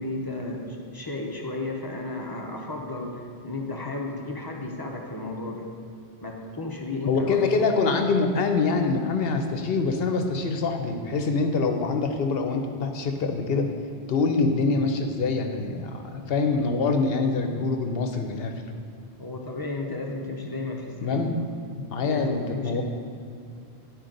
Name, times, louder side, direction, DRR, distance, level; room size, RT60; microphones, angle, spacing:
voice 1, 0.0-5.6 6.2-7.4 19.2-21.3 22.0-22.8, left 2 dB, 25° left, 0 dB, 0.7 m, -33 dB
voice 2, 7.1-13.7 14.1-18.5 21.0-21.3 21.8-22.8, left 4 dB, 70° left, 5 dB, 0.9 m, -25 dB
10.5 x 4.5 x 3.9 m, 2.5 s
omnidirectional pair, 1.1 m